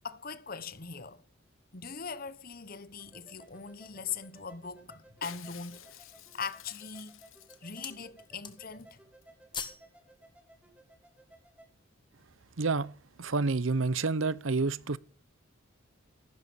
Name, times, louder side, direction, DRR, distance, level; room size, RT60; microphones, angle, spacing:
voice 1, 0.0-1.2 1.7-7.2 7.6-9.0, left 5 dB, 45° left, 1.1 m, -41 dB
sound 1, 3.0-11.7, right 2 dB, 5° right, 2.6 m, -59 dB
sound 2, 3.2-4.2 4.8-4.9 5.3-5.9 6.6-6.9 7.3-8.0 8.3-8.8 9.1-9.9 10.2-10.4, left 6 dB, 20° left, 1.7 m, -44 dB
Shatter, 5.2-8.0 8.2-8.3 8.5-8.9 9.2-9.3, left 10 dB, 80° left, 1.3 m, -51 dB
voice 2, 12.6-12.9 13.2-15.0, right 3 dB, 75° right, 0.8 m, -29 dB
15.5 x 12.0 x 7.0 m
head